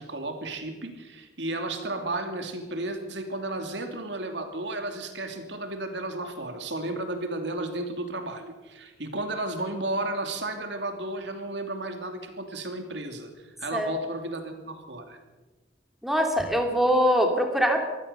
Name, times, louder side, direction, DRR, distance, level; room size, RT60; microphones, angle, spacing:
voice 1, 0.0-13.3 13.6-15.2, right 2 dB, 70° right, 6 dB, 2.8 m, -33 dB
voice 2, 16.0-17.8, equal, ahead, 2 dB, 2.6 m, -23 dB
24.0 x 15.5 x 6.9 m, 1.2 s
head